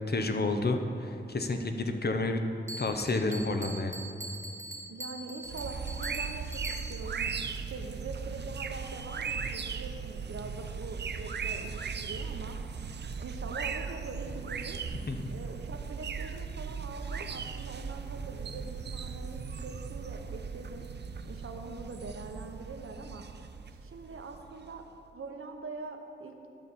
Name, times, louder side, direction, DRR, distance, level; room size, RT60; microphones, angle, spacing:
voice 1, 0.1-2.4 2.8-3.9 15.1-15.2, left 2 dB, 50° left, 5 dB, 0.7 m, -30 dB
Bell, 2.7-7.2, right 1 dB, 15° right, 0.7 m, -43 dB
voice 2, 4.9-12.6 13.2-14.8 15.3-20.9 21.2-23.2 23.8-24.8 25.1-26.5, right 3 dB, 90° right, 4 dB, 0.8 m, -43 dB
sound 1, 5.4-24.9, right 5 dB, 55° right, 0.4 m, -38 dB
12.0 x 4.1 x 7.1 m, 2.6 s
wide cardioid pair, 95°, 21 cm